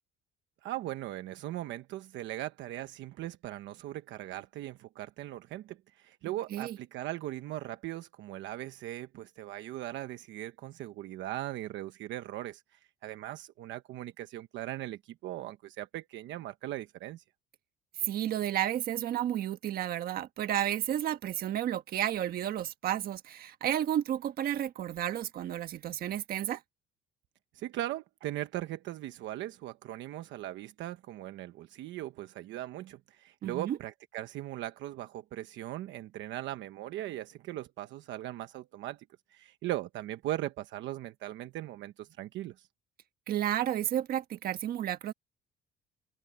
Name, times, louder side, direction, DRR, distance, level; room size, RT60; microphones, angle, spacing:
voice 1, 0.6-17.2 27.5-42.7, right 14 dB, 65° right, 1.1 m, -39 dB
voice 2, 18.0-26.6 33.4-33.8 43.3-45.1, right 11 dB, 45° right, 1.4 m, -32 dB
open air
cardioid pair, 170°, 21 cm